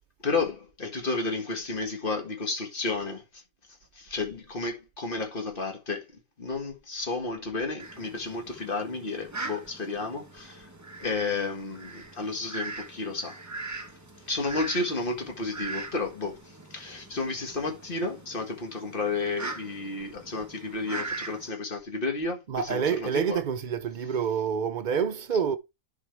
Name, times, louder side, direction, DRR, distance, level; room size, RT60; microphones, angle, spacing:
voice 1, 0.2-3.2 4.0-6.0 6.4-10.7 11.0-13.4 14.3-16.4 16.7-23.4, left 3 dB, 35° left, 1.8 m, -32 dB
Fowl, 7.8-21.5, right 3 dB, 15° right, 0.9 m, -41 dB
voice 2, 22.5-25.6, right 7 dB, 65° right, 0.4 m, -27 dB
11.0 x 4.7 x 3.3 m
omnidirectional pair, 1.5 m